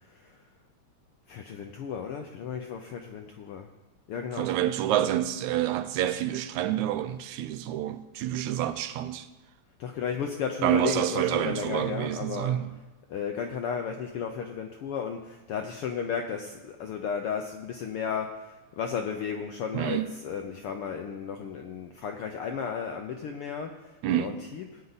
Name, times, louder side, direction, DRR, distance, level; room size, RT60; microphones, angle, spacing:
voice 1, 0.1-0.4 1.3-3.7 4.1-4.7 9.8-12.6 13.1-24.8, left 7 dB, 75° left, 1.3 m, -34 dB
voice 2, 4.4-9.3 10.6-12.7 19.7-20.1 24.0-24.4, right 11 dB, 80° right, 2.1 m, -28 dB
18.0 x 9.2 x 4.1 m
omnidirectional pair, 3.4 m